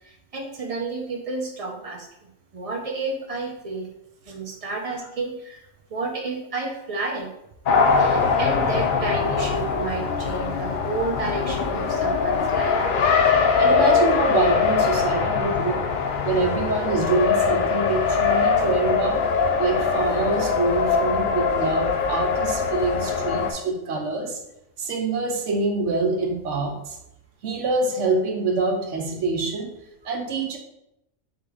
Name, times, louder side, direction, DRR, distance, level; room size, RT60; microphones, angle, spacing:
voice 1, 0.0-2.1 2.5-3.9 4.3-7.3 8.0-12.8, right 3 dB, 40° right, 0 dB, 0.5 m, -31 dB
Race car auto racing, 7.7-23.5, left 5 dB, 65° left, 0.5 m, -22 dB
voice 2, 13.6-15.9 16.2-19.3 19.6-24.4 24.8-27.0 27.4-29.7 30.0-30.6, right 3 dB, 70° right, 3 dB, 1.0 m, -25 dB
3.8 x 3.5 x 3.5 m, 0.85 s
omnidirectional pair, 1.4 m